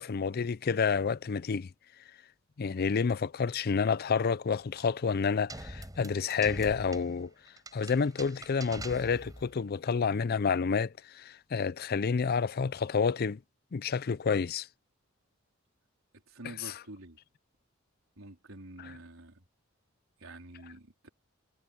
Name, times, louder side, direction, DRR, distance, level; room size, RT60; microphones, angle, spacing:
voice 1, 0.0-1.7 2.6-7.3 7.7-13.4 13.7-14.7 16.6-16.7 18.8-18.9, left 5 dB, 50° left, 0.5 m, -29 dB
sound 1, 5.5-9.6, right 1 dB, 20° right, 7.0 m, -44 dB
voice 2, 16.3-17.2 18.2-19.4 20.2-21.1, right 1 dB, 85° right, 3.9 m, -48 dB
head